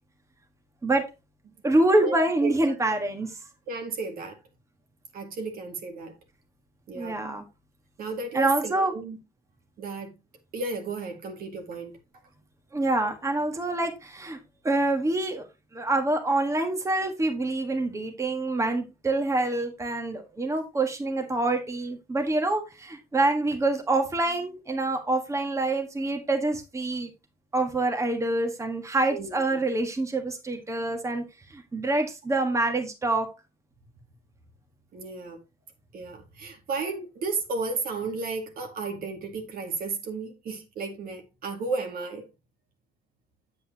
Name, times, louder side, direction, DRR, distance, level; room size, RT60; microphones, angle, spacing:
voice 1, 1.6-3.4 6.9-7.4 8.3-8.9 12.7-14.4 14.6-15.4 15.7-27.1 27.5-31.2 31.5-33.3, right 2 dB, 15° right, 1.5 m, -26 dB
voice 2, 2.4-2.7 3.7-4.4 5.1-6.2 6.9-7.2 8.0-9.2 9.8-10.1 10.5-12.0 29.1-29.6 34.9-35.4 35.9-42.3, right 4 dB, 60° right, 2.0 m, -33 dB
8.3 x 7.8 x 2.9 m
cardioid pair, 110°, 17 cm